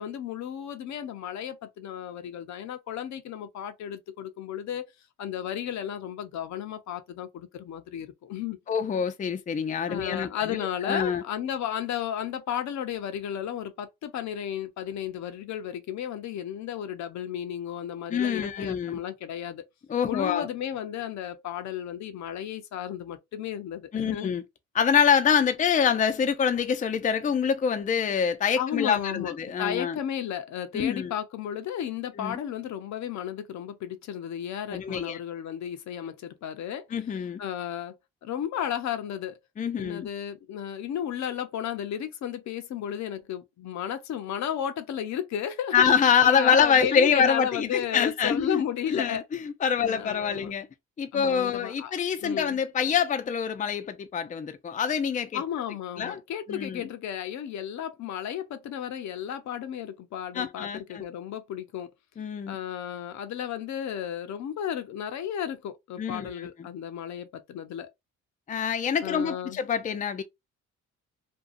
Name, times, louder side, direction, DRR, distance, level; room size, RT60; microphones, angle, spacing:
voice 1, 0.0-4.8 5.2-8.6 9.9-19.7 20.0-24.3 28.6-36.8 37.4-38.0 38.2-39.4 39.8-49.2 49.8-50.5 51.1-51.9 52.2-52.6 55.3-61.9 62.5-67.9 69.0-69.6, left 9 dB, 65° left, 0.6 m, -33 dB
voice 2, 8.7-11.2 18.1-19.0 19.9-20.5 23.9-24.4 24.7-30.0 30.7-31.1 32.2-32.4 34.7-35.2 36.9-37.4 39.6-40.1 45.7-50.7 51.0-55.4 56.0-56.2 56.5-56.9 60.3-61.1 62.2-62.6 66.0-66.3 68.5-70.2, left 7 dB, 25° left, 0.4 m, -25 dB
2.6 x 2.2 x 2.4 m
cardioid pair, 90°, 30 cm